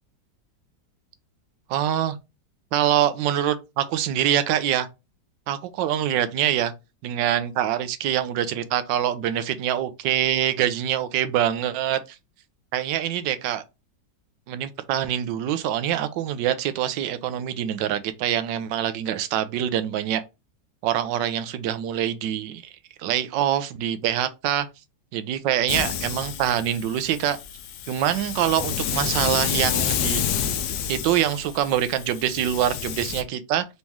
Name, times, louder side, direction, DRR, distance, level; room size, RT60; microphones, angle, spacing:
voice 1, 1.7-2.2 2.7-4.9 5.5-6.7 7.0-12.0 12.7-13.6 14.5-20.2 20.8-22.6 23.0-24.7 25.1-27.4 27.9-30.2 30.9-33.6, right 11 dB, 85° right, 1.3 m, -24 dB
Hiss, 25.7-33.2, left 8 dB, 70° left, 1.1 m, -29 dB
4.1 x 3.0 x 3.5 m
omnidirectional pair, 1.9 m